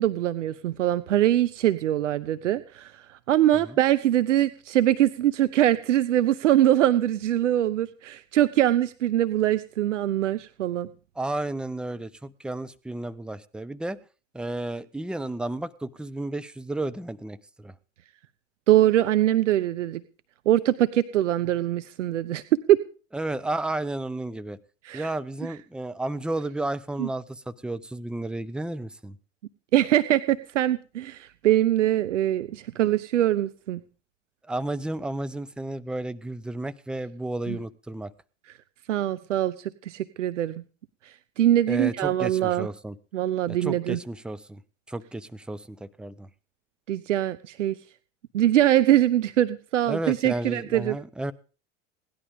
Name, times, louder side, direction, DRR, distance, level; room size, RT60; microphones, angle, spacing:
voice 1, 0.0-10.9 18.7-20.0 20.5-22.4 22.7-22.8 24.8-25.1 27.0-27.1 29.7-33.8 37.5-37.6 38.9-40.6 41.0-42.7 43.1-44.0 46.9-47.8 48.3-51.0, right 12 dB, 80° right, 14 dB, 0.7 m, -23 dB
voice 2, 11.2-14.0 14.3-17.7 23.1-24.6 24.9-29.2 34.5-38.1 41.7-43.0 43.5-44.6 44.9-46.3 49.9-51.3, right 2 dB, ahead, 13 dB, 0.8 m, -32 dB
17.5 x 11.5 x 5.2 m, 0.37 s
hypercardioid pair, 80°, 36 cm